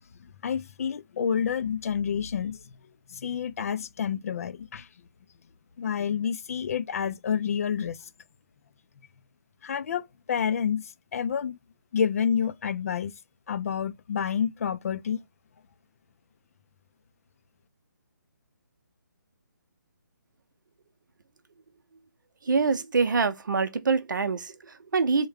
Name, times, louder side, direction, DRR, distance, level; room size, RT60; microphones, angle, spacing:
voice 1, 0.4-2.6 3.1-4.9 5.8-8.0 9.6-11.6 11.9-13.1 13.5-15.2, left 7 dB, 45° left, 0.4 m, -29 dB
voice 2, 22.5-25.3, right 4 dB, 70° right, 0.7 m, -25 dB
3.5 x 2.2 x 3.3 m
figure-of-eight pair, 150°, 11 cm